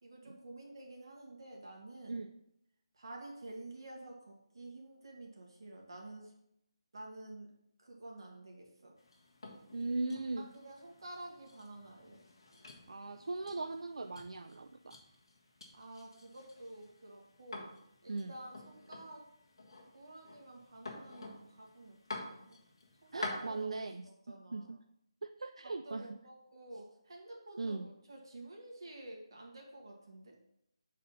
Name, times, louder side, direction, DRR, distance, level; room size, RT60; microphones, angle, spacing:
voice 1, 0.0-2.2 2.9-6.3 6.9-7.5 7.8-8.9 10.4-12.2 15.7-17.7 18.0-19.3 19.9-22.6 23.0-24.7 25.6-30.4, right 2 dB, 50° right, -1 dB, 1.7 m, -50 dB
sound 1, 9.0-23.6, left 2 dB, 50° left, 1.4 m, -49 dB
voice 2, 9.7-10.5 12.9-15.0 18.1-18.4 23.1-24.1 24.5-24.8 25.2-26.1 27.6-27.9, right 3 dB, 85° right, 6 dB, 0.4 m, -39 dB
7.5 x 4.2 x 4.0 m, 0.77 s
hypercardioid pair, 180°, 3 cm